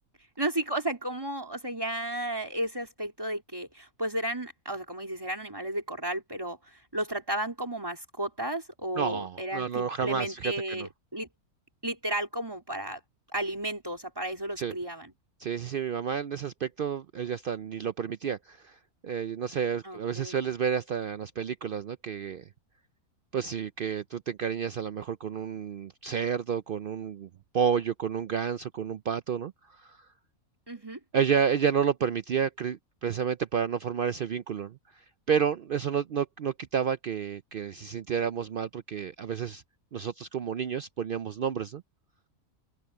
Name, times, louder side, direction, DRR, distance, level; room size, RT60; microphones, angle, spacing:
voice 1, 0.4-11.3 11.8-13.0 13.3-15.1 19.8-20.4 30.7-31.0, right 1 dB, 15° right, 4.0 m, -33 dB
voice 2, 9.0-10.9 14.6-14.7 15.4-22.4 23.3-27.3 27.5-30.0 31.1-39.6 39.9-41.8, right 7 dB, 85° right, 0.4 m, -30 dB
open air
omnidirectional pair, 1.6 m